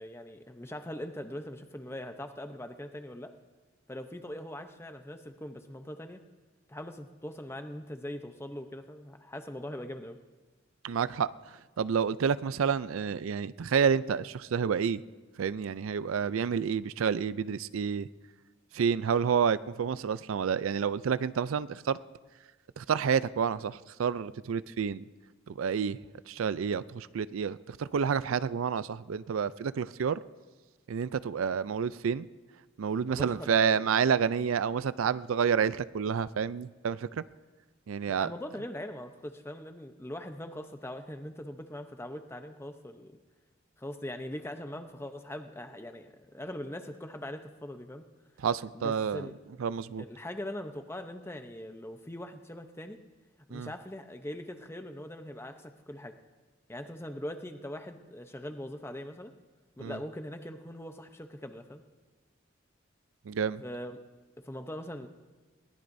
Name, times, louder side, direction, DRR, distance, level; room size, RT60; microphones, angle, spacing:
voice 1, 0.0-3.3 3.9-6.2 6.7-10.2 33.1-34.0 38.1-43.2 43.8-48.1 48.7-49.4 50.0-53.0 53.5-56.2 56.7-59.3 59.8-61.8 63.6-64.0 64.4-65.1, left 1 dB, 10° left, 7 dB, 0.7 m, -41 dB
voice 2, 10.8-11.3 11.8-15.0 15.4-18.1 18.7-22.0 22.8-25.0 25.5-26.0 26.3-30.2 30.9-32.3 32.8-37.2 37.9-38.3 48.4-49.3 49.6-50.0 53.5-53.7 59.8-60.0 63.3-63.6, right 6 dB, 85° right, 16 dB, 0.4 m, -29 dB
22.0 x 18.5 x 2.7 m, 1.3 s
head